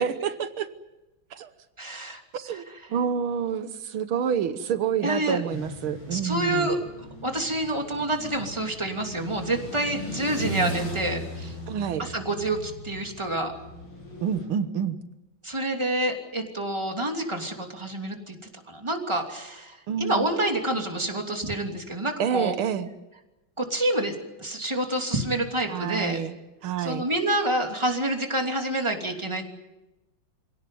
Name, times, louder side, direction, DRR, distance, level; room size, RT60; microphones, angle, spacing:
voice 1, 0.0-0.7 1.3-1.5 2.3-6.7 11.7-12.1 14.2-15.0 19.9-20.3 22.2-22.9 25.7-26.4 26.6-27.0, right 8 dB, 85° right, 11 dB, 2.0 m, -28 dB
voice 2, 1.8-2.2 5.0-5.4 6.1-11.5 12.0-13.5 15.4-18.4 18.7-22.5 23.6-26.2 26.8-29.4, right 1 dB, 15° right, 2 dB, 3.0 m, -28 dB
sound 1, 5.5-14.5, right 1 dB, 70° left, 9.0 m, -37 dB
26.5 x 17.5 x 9.3 m, 1.0 s
omnidirectional pair, 2.3 m